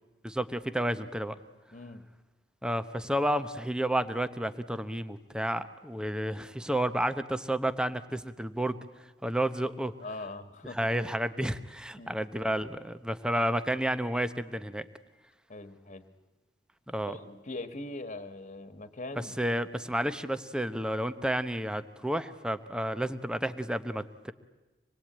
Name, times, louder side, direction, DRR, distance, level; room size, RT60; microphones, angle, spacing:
voice 1, 0.2-1.4 2.6-8.8 9.2-9.9 10.7-14.9 16.9-17.2 19.2-24.3, right 1 dB, 5° right, 12 dB, 0.9 m, -31 dB
voice 2, 1.7-2.1 10.0-10.9 12.0-12.2 15.5-16.0 17.1-19.3, left 2 dB, 40° left, 10 dB, 1.7 m, -41 dB
26.0 x 21.5 x 8.8 m, 1.1 s
head